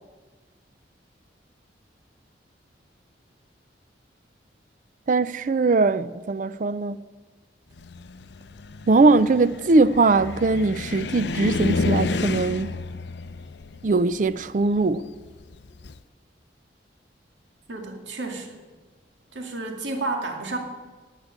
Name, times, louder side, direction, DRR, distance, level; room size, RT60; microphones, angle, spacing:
voice 1, 5.1-7.1 8.9-12.8 13.8-15.1, right 3 dB, 45° right, 0.4 m, -21 dB
Car, 7.8-16.0, left 3 dB, 65° left, 0.6 m, -31 dB
voice 2, 17.7-18.6 19.3-20.6, right 2 dB, 85° right, 2.1 m, -31 dB
11.5 x 8.2 x 8.8 m
head